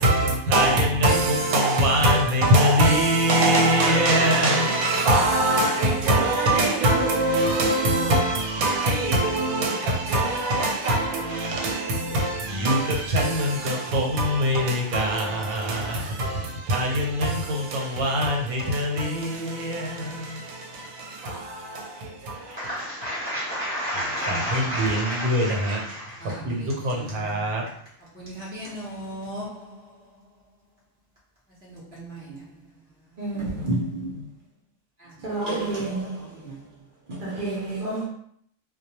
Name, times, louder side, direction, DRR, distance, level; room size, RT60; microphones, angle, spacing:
voice 1, 0.0-22.8 24.3-25.9 26.4-27.6, right 1 dB, 85° right, 1.1 m, -23 dB
voice 2, 22.5-27.1 28.1-29.7 31.6-32.4 35.4-35.6 36.2-36.5, equal, 15° left, 0.4 m, -33 dB
voice 3, 33.2-34.1 35.2-36.2 37.1-38.1, right 2 dB, 50° right, 0.6 m, -28 dB
2.2 x 2.2 x 2.8 m
omnidirectional pair, 1.5 m